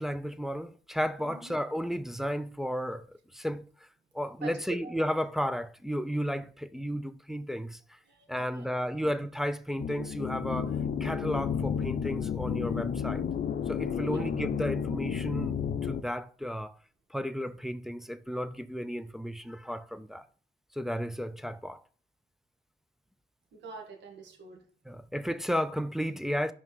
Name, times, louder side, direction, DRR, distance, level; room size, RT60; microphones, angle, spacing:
voice 1, 0.0-3.6 4.1-8.0 8.3-10.7 11.0-13.2 13.7-16.7 17.1-20.2 20.7-21.8 24.9-26.5, equal, ahead, 0.4 m, -33 dB
voice 2, 1.2-1.6 4.4-5.1 8.0-9.0 13.9-14.3 23.5-24.6, right 4 dB, 65° right, 1.5 m, -46 dB
sound 1, 9.8-16.0, left 7 dB, 50° left, 0.6 m, -32 dB
5.2 x 3.5 x 5.2 m
cardioid pair, 90°, 20 cm